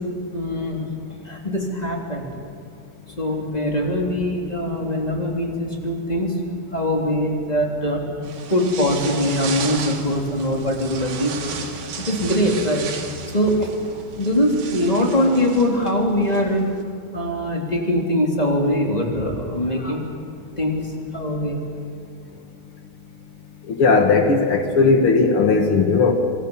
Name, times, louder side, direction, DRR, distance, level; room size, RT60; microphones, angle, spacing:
voice 1, 0.3-0.9 1.2-2.3 3.2-6.4 6.7-8.0 8.5-11.6 12.0-12.9 13.2-16.7 17.1-20.0 20.6-21.6, equal, 10° left, 0 dB, 2.8 m, -22 dB
sound 1, 8.2-16.8, right 6 dB, 70° right, 4.2 m, -34 dB
voice 2, 23.7-26.1, left 4 dB, 55° left, 4 dB, 1.5 m, -17 dB
26.5 x 23.0 x 7.3 m, 2.1 s
omnidirectional pair, 4.7 m